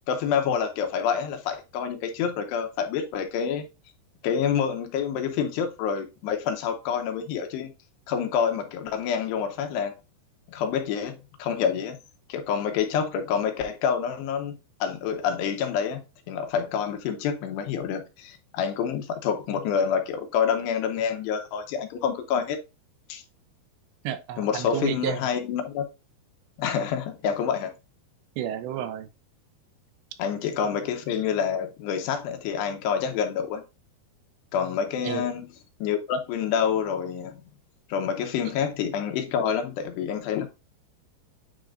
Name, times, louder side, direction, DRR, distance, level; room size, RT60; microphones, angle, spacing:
voice 1, 0.1-3.6 4.2-7.7 8.1-9.9 10.5-12.0 12.3-14.5 14.8-16.0 16.3-22.6 23.1-23.2 24.4-25.8 26.6-27.7 30.2-33.6 34.5-35.5 35.8-37.4 37.9-40.5, left 7 dB, 80° left, 3.1 m, -27 dB
voice 2, 24.0-25.2 28.4-29.1 35.0-35.3, right 10 dB, 80° right, 2.9 m, -31 dB
9.5 x 3.8 x 2.6 m
omnidirectional pair, 5.0 m